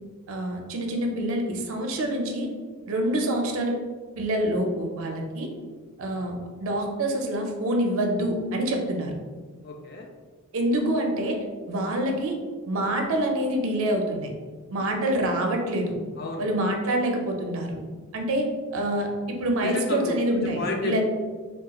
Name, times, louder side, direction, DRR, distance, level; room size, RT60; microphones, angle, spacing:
voice 1, 0.3-2.5 2.9-3.8 4.2-5.5 6.0-9.1 10.5-12.4 12.7-14.3 14.7-15.9 16.4-17.8 18.1-21.0, right 1 dB, 65° right, 2 dB, 0.5 m, -26 dB
voice 2, 9.6-10.1 16.2-16.4 19.6-20.2 20.6-21.0, left 2 dB, 45° left, 1 dB, 0.4 m, -31 dB
3.9 x 2.3 x 2.3 m, 1.4 s
head